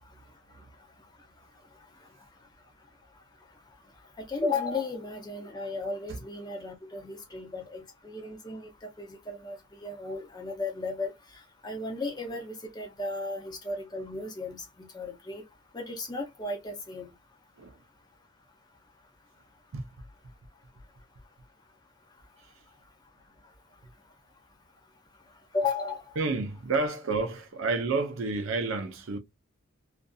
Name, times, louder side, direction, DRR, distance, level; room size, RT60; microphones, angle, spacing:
voice 1, 1.7-2.1 4.2-15.4 15.7-17.1 25.5-26.2, left 3 dB, 20° left, 0.5 m, -35 dB
voice 2, 19.7-20.1 22.4-22.5 26.2-29.2, right 3 dB, 60° right, 0.5 m, -30 dB
2.6 x 2.5 x 2.3 m
head